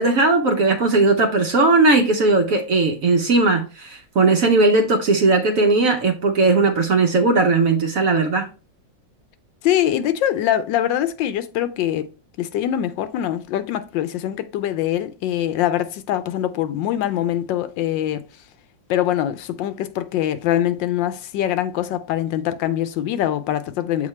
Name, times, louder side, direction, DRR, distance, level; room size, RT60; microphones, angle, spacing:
voice 1, 0.0-8.5, right 3 dB, 60° right, 0.9 m, -18 dB
voice 2, 9.6-12.1 12.4-18.3 18.9-24.1, left 11 dB, 80° left, 1.3 m, -23 dB
7.3 x 4.2 x 3.2 m
omnidirectional pair, 2.0 m